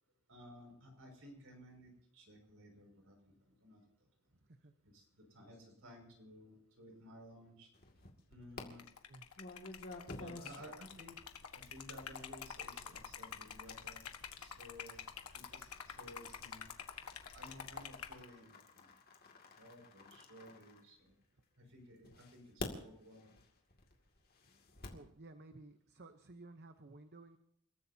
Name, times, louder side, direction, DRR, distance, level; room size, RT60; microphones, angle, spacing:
voice 1, 0.3-3.8 4.8-7.7 8.3-8.8 10.1-11.2 11.5-14.0 14.4-15.0 15.3-16.7 17.3-18.9 19.6-21.1 21.6-23.4, equal, 65° right, 3 dB, 6.0 m, -56 dB
sound 1, 7.7-8.6 9.4-21.4 22.0-25.1, left 2 dB, 45° left, 2.3 m, -52 dB
Liquid, 8.7-18.2, left 7 dB, 80° left, 1.5 m, -48 dB
voice 2, 24.8-27.4, right 2 dB, 50° right, 8 dB, 0.9 m, -55 dB
29.5 x 14.5 x 2.8 m, 0.75 s
head